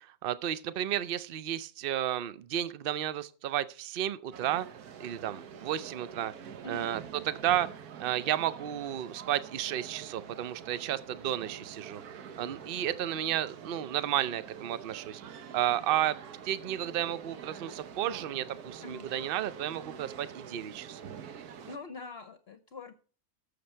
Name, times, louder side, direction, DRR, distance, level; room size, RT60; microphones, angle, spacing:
voice 1, 0.0-4.7 5.0-6.3 6.7-7.0 7.3-15.2 15.5-16.2 16.4-21.0, right 11 dB, 55° right, 0.6 m, -32 dB
sound 1, 4.3-21.8, right 7 dB, 85° right, 1.4 m, -46 dB
voice 2, 21.7-22.9, left 3 dB, 50° left, 0.9 m, -44 dB
12.0 x 7.1 x 4.5 m
omnidirectional pair, 1.6 m